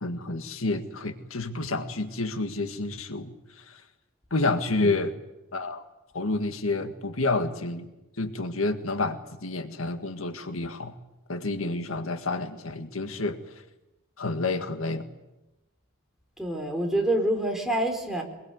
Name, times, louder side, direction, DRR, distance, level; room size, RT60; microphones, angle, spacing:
voice 1, 0.0-3.8 4.3-5.2 5.5-5.8 6.1-7.9 8.2-10.9 11.3-13.4 14.2-15.1, left 2 dB, 80° left, 8 dB, 1.8 m, -29 dB
voice 2, 16.4-18.2, right 1 dB, ahead, 1 dB, 4.5 m, -26 dB
24.0 x 22.5 x 9.5 m, 0.98 s
head